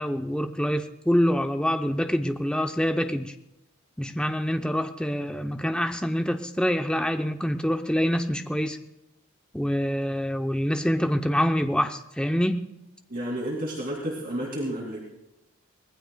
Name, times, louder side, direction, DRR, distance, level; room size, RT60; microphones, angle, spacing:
voice 1, 0.0-3.3 4.0-8.8 9.5-12.6, equal, 5° left, 6 dB, 0.7 m, -26 dB
voice 2, 13.1-15.0, right 1 dB, 40° right, -2 dB, 2.7 m, -31 dB
24.5 x 19.0 x 2.3 m, 0.88 s
head